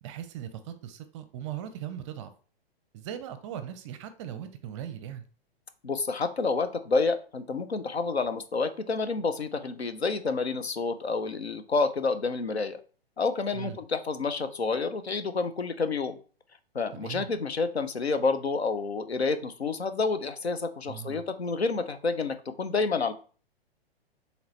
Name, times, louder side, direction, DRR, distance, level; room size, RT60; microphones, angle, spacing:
voice 1, 0.0-2.3 2.9-5.2 13.5-13.8 16.9-17.3 20.9-21.2, right 10 dB, 30° right, 10 dB, 0.5 m, -39 dB
voice 2, 5.8-12.8 13.2-16.2 16.7-23.1, left 4 dB, 85° left, 10 dB, 0.6 m, -29 dB
4.8 x 3.3 x 3.1 m, 0.39 s
figure-of-eight pair, 110°, 31 cm